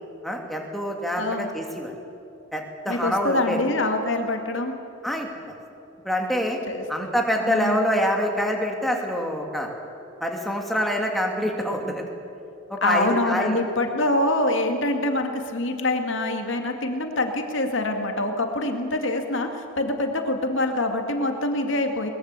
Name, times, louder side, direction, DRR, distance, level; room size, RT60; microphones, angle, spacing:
voice 1, 0.2-1.9 2.5-3.6 5.0-5.6 6.0-6.6 6.9-9.7 10.2-12.0 12.7-13.6, equal, ahead, 1 dB, 2.6 m, -26 dB
voice 2, 1.2-1.5 2.9-4.7 6.7-6.8 7.5-7.9 12.8-22.1, left 2 dB, 65° left, 4 dB, 2.2 m, -25 dB
22.5 x 21.0 x 8.3 m, 2.7 s
head